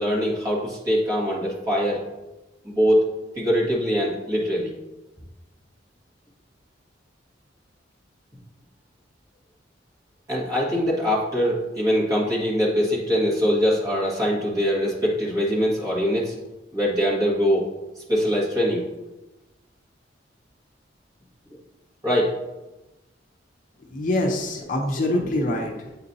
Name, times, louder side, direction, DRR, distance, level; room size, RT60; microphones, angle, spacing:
voice 1, 0.0-2.0 2.6-3.0 3.3-4.7 10.3-16.3 16.7-17.6 18.1-18.8 22.0-22.4, equal, 20° right, -6 dB, 1.7 m, -22 dB
voice 2, 23.9-26.0, left 1 dB, 45° left, 1 dB, 0.6 m, -25 dB
8.3 x 4.2 x 2.7 m, 1.0 s
head